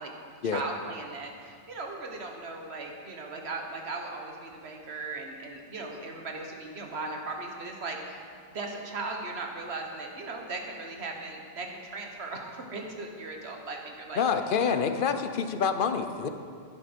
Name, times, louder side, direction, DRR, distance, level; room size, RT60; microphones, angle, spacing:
voice 1, 0.0-8.2 8.5-14.2 14.6-14.8, right 3 dB, 85° right, 2 dB, 1.5 m, -38 dB
voice 2, 14.2-16.3, left 6 dB, 60° left, 8 dB, 0.8 m, -27 dB
10.5 x 10.5 x 5.2 m, 2.2 s
omnidirectional pair, 1.1 m